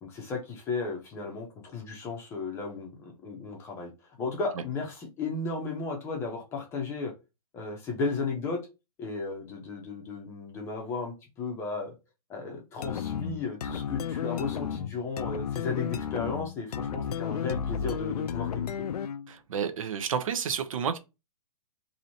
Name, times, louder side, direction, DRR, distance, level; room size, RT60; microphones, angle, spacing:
voice 1, 0.0-3.9 4.2-7.1 7.5-8.6 9.0-11.9 12.3-18.6, left 4 dB, 15° left, 0.7 m, -34 dB
sound 1, 12.8-19.3, left 8 dB, 75° left, 0.4 m, -33 dB
voice 2, 19.3-21.0, right 7 dB, 60° right, 0.7 m, -30 dB
3.0 x 2.7 x 4.0 m
hypercardioid pair, 155°, 20 cm